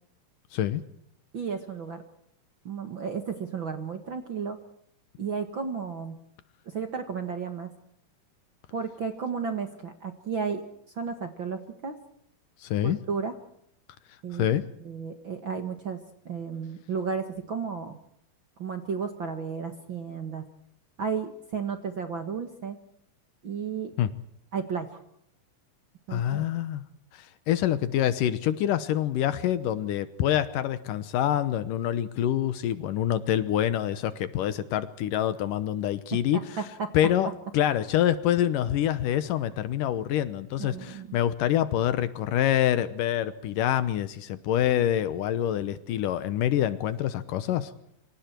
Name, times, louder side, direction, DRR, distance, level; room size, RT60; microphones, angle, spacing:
voice 1, 0.5-0.8 12.6-13.0 14.3-14.7 24.0-24.1 26.1-26.8 27.1-36.5 36.9-47.7, left 11 dB, 75° left, 13 dB, 2.5 m, -26 dB
voice 2, 1.3-2.0 2.7-4.6 5.2-6.2 6.7-7.7 8.7-10.6 11.0-11.9 12.8-13.3 14.2-14.5 14.8-16.0 16.3-18.0 18.6-20.5 21.0-22.8 23.4-23.9 24.5-25.0 26.1-26.5 36.3-36.4 36.8-36.9 40.6-41.2, right 6 dB, 45° right, 6 dB, 1.8 m, -33 dB
27.0 x 25.5 x 4.5 m, 0.72 s
omnidirectional pair, 4.1 m